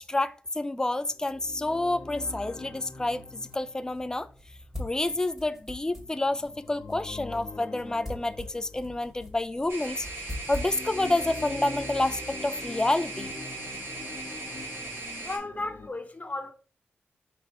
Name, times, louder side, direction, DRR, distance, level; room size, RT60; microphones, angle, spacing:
voice 1, 0.0-4.3 4.8-10.1 10.5-13.3, left 2 dB, 15° left, 0.4 m, -29 dB
sound 1, 1.1-9.6 10.2-15.9, left 3 dB, 65° left, 0.7 m, -44 dB
sound 2, 3.1-12.9, left 1 dB, 10° right, 1.7 m, -44 dB
sound 3, 9.7-15.4, right 2 dB, 65° right, 1.5 m, -38 dB
voice 2, 15.2-16.5, left 2 dB, 35° left, 0.9 m, -34 dB
3.6 x 3.0 x 4.6 m
cardioid pair, 50°, 4 cm